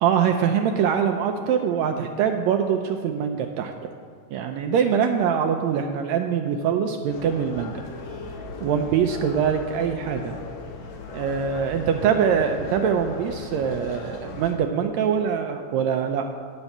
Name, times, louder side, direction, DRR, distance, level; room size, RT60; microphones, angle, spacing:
voice 1, 0.0-3.7 4.3-7.8 8.6-10.3 11.1-16.3, right 7 dB, 85° right, 5 dB, 1.6 m, -23 dB
sound 1, 7.1-14.5, left 3 dB, 65° left, 2.1 m, -38 dB
10.0 x 5.4 x 7.0 m, 2.2 s
omnidirectional pair, 3.6 m